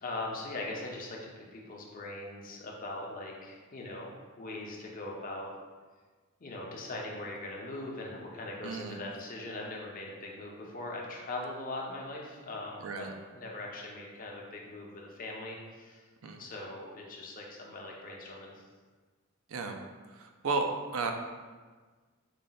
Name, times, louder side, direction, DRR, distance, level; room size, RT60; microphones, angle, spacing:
voice 1, 0.0-5.5 6.4-16.1 16.4-18.5, left 2 dB, 40° left, -1 dB, 0.7 m, -41 dB
voice 2, 8.6-9.0 12.8-13.1 16.2-16.5 19.5-19.8 20.1-20.7 20.9-21.1, right 4 dB, 75° right, 5 dB, 0.5 m, -33 dB
4.9 x 2.2 x 3.9 m, 1.4 s
head